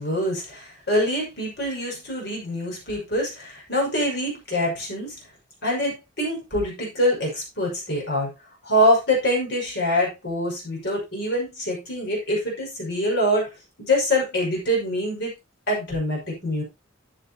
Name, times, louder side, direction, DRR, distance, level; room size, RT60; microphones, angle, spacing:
voice 1, 0.0-5.2 5.6-8.3 8.6-13.5 13.8-15.3 15.7-16.6, equal, 55° left, -1 dB, 6.0 m, -24 dB
12.0 x 9.4 x 2.9 m, 0.24 s
head